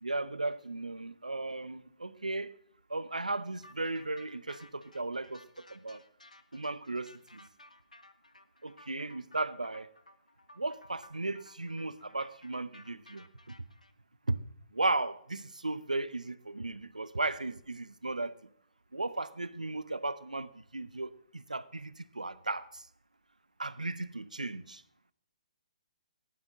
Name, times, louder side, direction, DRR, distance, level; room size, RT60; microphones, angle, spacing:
voice 1, 0.0-2.5 2.9-6.0 6.5-7.1 8.6-9.9 10.6-13.5 14.3-14.4 14.7-18.3 18.9-22.8 23.6-24.8, right 2 dB, 90° right, 0.8 m, -35 dB
sound 1, 3.6-13.9, left 1 dB, 90° left, 1.1 m, -57 dB
16.5 x 10.5 x 3.7 m
figure-of-eight pair, 130°, 4 cm